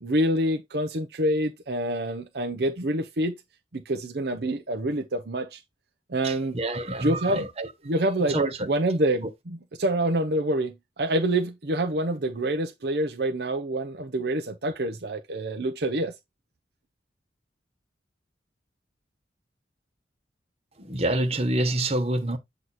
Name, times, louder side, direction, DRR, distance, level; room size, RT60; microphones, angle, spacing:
voice 1, 0.0-3.4 3.7-5.6 6.1-6.6 7.0-7.4 7.9-8.4 8.7-9.2 9.8-16.1, right 1 dB, 60° right, 0.8 m, -26 dB
voice 2, 6.2-7.7 8.2-8.7 20.7-22.4, right 1 dB, 35° right, 1.3 m, -27 dB
8.0 x 3.0 x 4.1 m
head